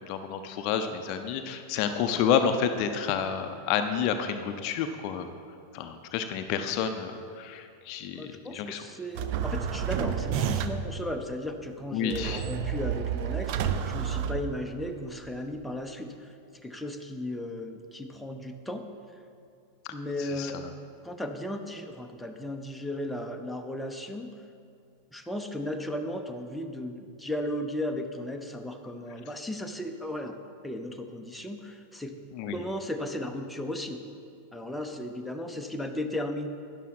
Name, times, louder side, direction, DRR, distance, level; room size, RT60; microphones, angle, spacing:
voice 1, 0.0-5.3 5.7-8.8 11.9-12.4 20.2-20.6 32.3-32.6, left 7 dB, 45° left, 8 dB, 0.5 m, -29 dB
voice 2, 8.1-18.8 19.9-20.7 21.0-24.3 25.1-30.4 30.6-32.1 32.5-34.0 34.5-36.5, left 1 dB, 5° left, 3 dB, 0.7 m, -35 dB
sound 1, 9.1-11.0 12.1-15.0, right 8 dB, 45° right, 0.5 m, -30 dB
12.5 x 10.0 x 3.1 m, 2.4 s
figure-of-eight pair, 90°, 0 cm